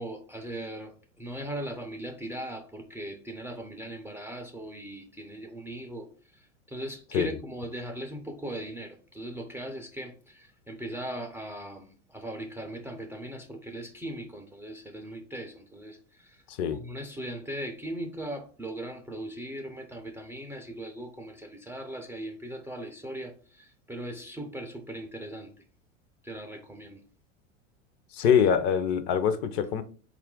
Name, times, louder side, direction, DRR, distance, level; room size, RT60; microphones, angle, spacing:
voice 1, 0.0-16.4 16.7-25.5 26.2-27.0, right 1 dB, 5° right, 0.3 m, -39 dB
voice 2, 16.5-16.8 28.1-29.8, left 8 dB, 50° left, 0.6 m, -24 dB
4.2 x 2.4 x 3.6 m
hypercardioid pair, 95°, 38 cm